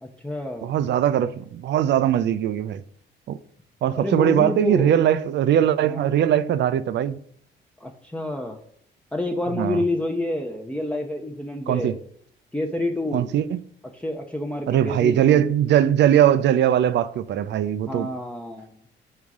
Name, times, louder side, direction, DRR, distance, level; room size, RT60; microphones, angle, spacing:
voice 1, 0.0-0.7 4.0-5.0 5.8-6.1 7.8-8.6 9.1-12.0 12.5-13.3 13.9-15.5 17.9-18.7, left 1 dB, 5° left, 0.6 m, -28 dB
voice 2, 0.6-2.8 3.3-3.4 3.8-7.2 9.6-9.8 11.7-12.0 13.1-13.6 14.7-18.1, right 10 dB, 65° right, 0.4 m, -20 dB
5.5 x 3.7 x 4.7 m
cardioid pair, 90°, 20 cm